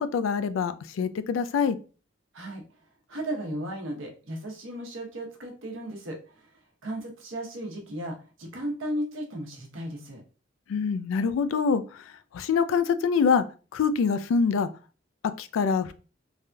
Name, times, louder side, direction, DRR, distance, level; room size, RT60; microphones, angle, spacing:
voice 1, 0.0-1.8 10.7-12.0 12.3-13.4 13.7-14.7 15.4-15.9, left 5 dB, 90° left, 12 dB, 0.3 m, -25 dB
voice 2, 3.1-6.5 6.8-10.2, right 1 dB, 85° right, 1 dB, 0.9 m, -35 dB
3.3 x 2.6 x 2.2 m, 0.36 s
head